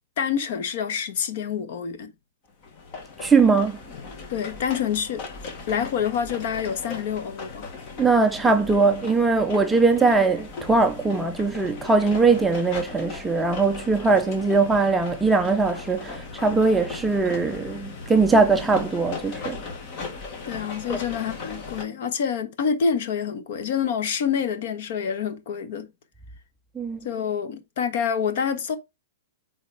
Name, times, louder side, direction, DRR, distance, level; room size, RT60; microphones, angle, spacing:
voice 1, 0.2-2.1 4.3-7.7 20.4-25.9 27.0-28.8, left 7 dB, 50° left, 1.2 m, -27 dB
sound 1, 2.6-21.8, left 4 dB, 30° left, 1.5 m, -38 dB
voice 2, 3.2-3.8 8.0-19.6 20.9-21.0 26.8-27.0, right 4 dB, 5° right, 0.4 m, -21 dB
8.5 x 4.1 x 3.4 m
supercardioid pair, 175°, 0 cm